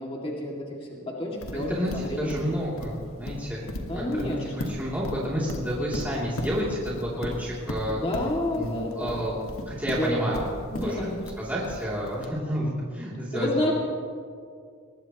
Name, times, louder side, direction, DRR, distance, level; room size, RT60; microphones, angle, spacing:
voice 1, 0.0-2.6 3.9-4.8 7.9-9.3 9.9-10.3 10.7-11.2 13.3-13.7, left 1 dB, 25° left, -3 dB, 2.4 m, -30 dB
Livestock farm animals working animals, 1.4-12.2, left 1 dB, 70° left, 1.7 m, -36 dB
voice 2, 1.5-8.0 8.5-9.4 9.7-10.5 10.8-11.1 11.4-13.5, equal, 10° right, -7 dB, 3.0 m, -30 dB
22.5 x 20.5 x 3.1 m, 2.2 s
head